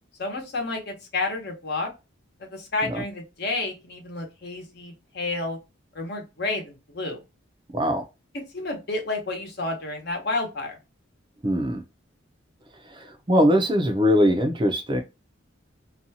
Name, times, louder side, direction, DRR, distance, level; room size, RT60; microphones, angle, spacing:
voice 1, 0.2-1.9 2.4-5.6 5.9-7.2 8.3-10.7, left 2 dB, 55° left, 0.9 m, -30 dB
voice 2, 7.7-8.0 11.4-11.8 12.9-15.0, equal, 25° right, 0.5 m, -21 dB
2.6 x 2.3 x 2.7 m
head